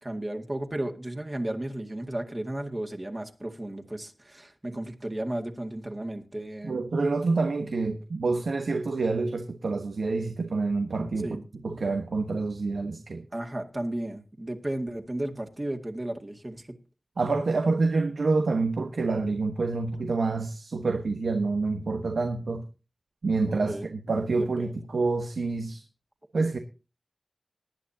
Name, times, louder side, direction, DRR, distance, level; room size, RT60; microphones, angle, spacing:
voice 1, 0.0-6.8 11.2-11.4 13.3-16.7 23.4-23.9 24.4-24.7, right 1 dB, 30° right, 2.0 m, -34 dB
voice 2, 6.6-13.3 17.2-22.7 23.2-25.8 26.3-26.6, right 3 dB, 90° right, 1.2 m, -27 dB
19.0 x 10.5 x 2.8 m
wide cardioid pair, 75°, 0 cm